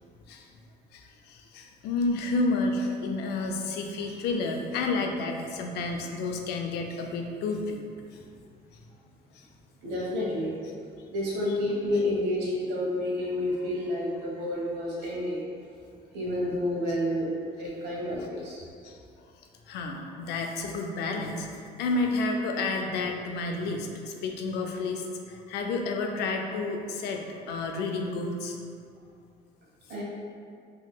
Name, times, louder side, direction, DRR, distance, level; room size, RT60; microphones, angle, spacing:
voice 1, 0.9-7.8 9.3-9.5 18.8-19.0 19.7-28.6, left 3 dB, 80° left, 3 dB, 0.4 m, -30 dB
voice 2, 9.8-15.4 16.1-17.3 17.6-18.6 29.9-30.0, left 1 dB, 80° right, -5 dB, 1.1 m, -30 dB
3.7 x 2.9 x 2.3 m, 2.3 s
cardioid pair, 110°, 17 cm